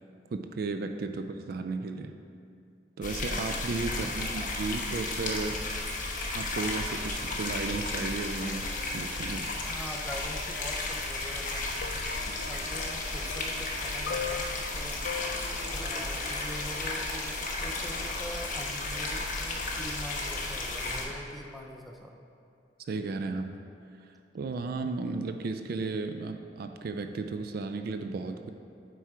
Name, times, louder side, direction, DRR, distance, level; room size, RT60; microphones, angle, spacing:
voice 1, 0.3-2.1 3.0-5.6 6.3-8.7 8.9-9.5 22.9-23.5 24.3-28.5, right 3 dB, 55° right, 7 dB, 0.3 m, -34 dB
sound 1, 3.0-21.0, left 2 dB, 45° left, 0.9 m, -33 dB
voice 2, 3.9-4.4 9.5-14.5 14.7-15.3 15.7-22.1, equal, ahead, 1 dB, 0.5 m, -43 dB
sound 2, 11.8-16.9 17.8-18.0, left 6 dB, 90° left, 0.4 m, -41 dB
sound 3, 13.6-17.5, equal, 75° right, 1.1 m, -51 dB
8.0 x 4.8 x 4.4 m, 2.5 s
head